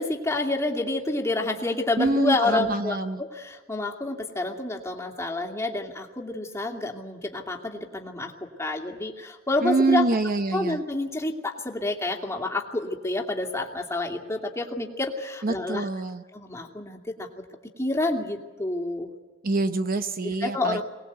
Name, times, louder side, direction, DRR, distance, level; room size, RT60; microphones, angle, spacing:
voice 1, 0.0-8.3 8.6-10.1 10.5-15.9 16.3-17.3 17.8-19.1 20.2-20.8, left 2 dB, 15° left, 1 dB, 2.5 m, -28 dB
voice 2, 2.0-3.2 9.6-10.8 15.4-16.2 19.4-20.8, right 3 dB, 45° right, 9 dB, 0.9 m, -25 dB
24.0 x 19.0 x 8.2 m, 1.3 s
head